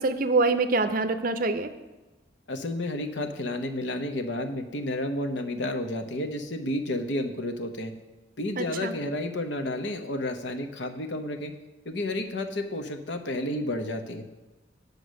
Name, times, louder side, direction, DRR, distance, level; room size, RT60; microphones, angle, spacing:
voice 1, 0.0-1.7 8.6-8.9, right 3 dB, 45° right, 10 dB, 0.6 m, -25 dB
voice 2, 2.5-7.9 8.4-11.5 11.8-14.2, left 1 dB, 65° left, 7 dB, 0.9 m, -31 dB
9.9 x 6.6 x 6.3 m, 1.1 s
head